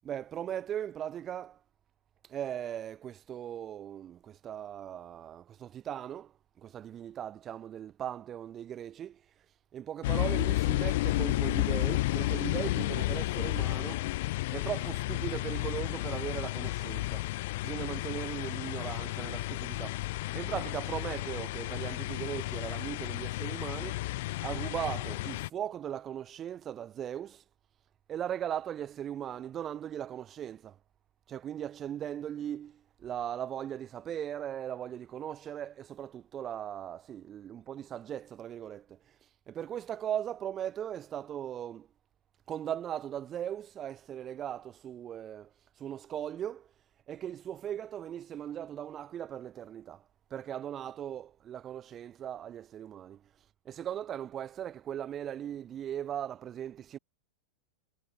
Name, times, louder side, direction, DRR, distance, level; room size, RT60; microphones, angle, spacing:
voice 1, 0.0-1.6 2.3-9.2 9.7-14.1 14.5-17.2 17.6-24.0 24.4-27.4 28.1-30.8 31.3-39.0 39.5-41.9 42.5-45.5 45.8-46.7 47.1-50.0 50.3-53.2 53.7-57.0, right 10 dB, 25° right, 0.6 m, -38 dB
sound 1, 10.0-25.5, left 19 dB, 50° left, 0.4 m, -32 dB
figure-of-eight pair, 90°, 0 cm